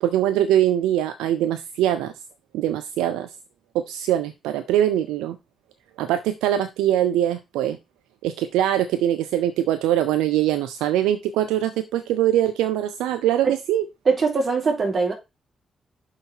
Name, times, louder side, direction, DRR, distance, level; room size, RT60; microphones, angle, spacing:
voice 1, 0.0-2.1 2.5-3.3 3.7-5.4 6.0-7.8 8.2-13.8, right 12 dB, 85° right, 0.5 m, -22 dB
voice 2, 14.1-15.1, right 4 dB, 50° right, 3.9 m, -21 dB
6.3 x 5.9 x 4.5 m
hypercardioid pair, 45°, 0 cm